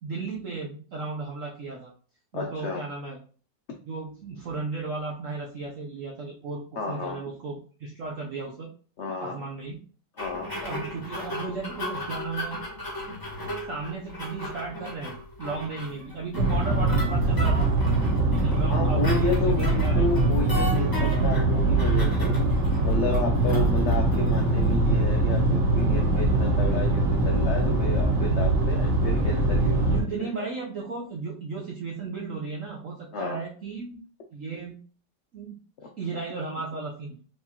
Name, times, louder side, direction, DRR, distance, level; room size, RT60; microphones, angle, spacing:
voice 1, 0.0-1.9 2.3-3.2 3.9-8.7 9.2-9.8 10.5-12.6 13.4-17.7 18.3-20.0 23.4-23.7 29.9-34.0 34.3-34.8 35.3-35.6 36.0-37.2, right 4 dB, 60° right, -2 dB, 0.9 m, -35 dB
voice 2, 2.3-2.8 6.8-7.2 9.0-9.4 10.2-10.5 18.7-22.4 22.8-30.2 33.1-33.4, left 4 dB, 80° left, 2 dB, 0.6 m, -31 dB
sound 1, 10.2-24.7, equal, 15° left, 1.0 m, -37 dB
sound 2, 16.4-30.0, right 2 dB, 85° right, 1.9 m, -22 dB
4.6 x 3.5 x 2.8 m, 0.41 s
omnidirectional pair, 2.0 m